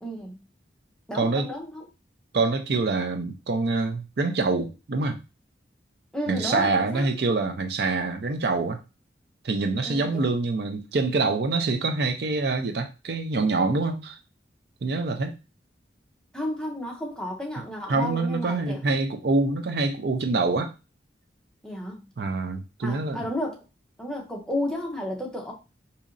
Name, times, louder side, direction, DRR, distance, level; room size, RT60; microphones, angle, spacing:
voice 1, 0.0-0.4 1.1-1.8 6.1-7.1 9.8-10.3 16.3-18.8 21.6-22.1 22.8-23.6 24.0-25.5, left 1 dB, 5° left, -1 dB, 0.6 m, -32 dB
voice 2, 1.1-1.5 2.3-5.2 6.3-8.8 9.4-14.2 14.8-15.4 17.9-20.7 22.2-23.3, right 3 dB, 60° right, 6 dB, 0.4 m, -25 dB
4.0 x 2.8 x 2.5 m, 0.29 s
head